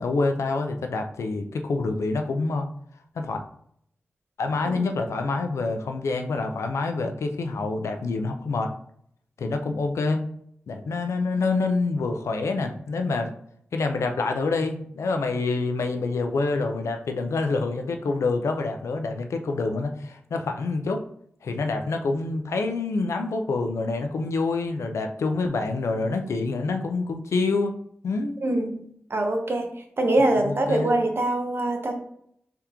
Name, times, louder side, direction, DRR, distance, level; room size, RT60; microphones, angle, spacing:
voice 1, 0.0-2.7 3.2-3.4 4.4-8.7 9.4-10.2 10.7-13.3 13.7-21.0 21.4-27.7 28.0-28.4 30.4-31.0, left 3 dB, 85° left, 5 dB, 0.4 m, -27 dB
voice 2, 28.4-28.8 29.1-29.7 30.0-31.9, right 1 dB, 55° right, 4 dB, 0.8 m, -23 dB
3.5 x 2.9 x 3.6 m, 0.69 s
cardioid pair, 50°, 5 cm